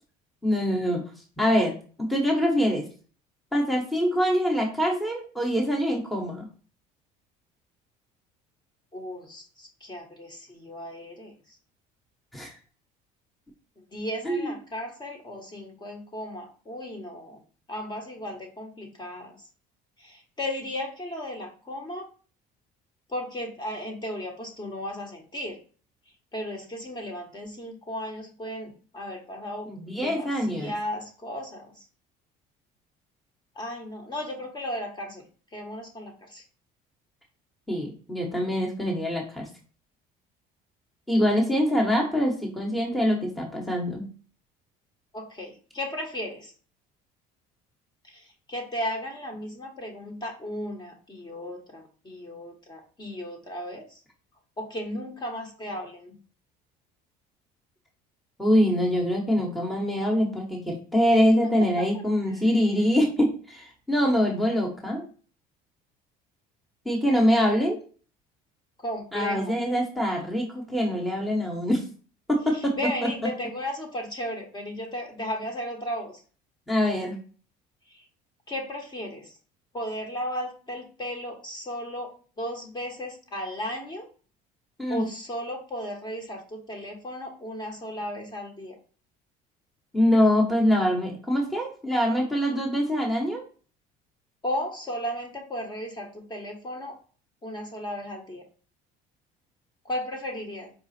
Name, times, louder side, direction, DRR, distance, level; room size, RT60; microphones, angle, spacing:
voice 1, 0.4-1.0 1.4-1.7 2.0-2.8 3.5-6.5 12.3-12.5 14.2-14.5 29.7-30.7 37.7-39.5 41.1-44.1 58.4-65.0 66.8-67.8 69.1-71.8 72.3-72.7 76.7-77.2 84.8-85.0 89.9-93.4, equal, ahead, -1 dB, 1.1 m, -24 dB
voice 2, 8.9-11.3 13.9-17.4 17.7-19.4 20.0-22.1 23.1-25.6 26.3-31.7 33.6-35.2 35.5-36.4 45.1-46.5 48.0-54.0 54.6-56.2 61.3-61.4 61.9-62.0 68.8-69.6 72.5-76.1 77.9-78.0 78.5-79.3 79.7-84.1 84.9-88.7 94.4-97.0 97.4-98.4 99.8-100.7, equal, 25° left, 2 dB, 1.2 m, -35 dB
5.0 x 2.3 x 4.1 m, 0.39 s
supercardioid pair, 100°, 18 cm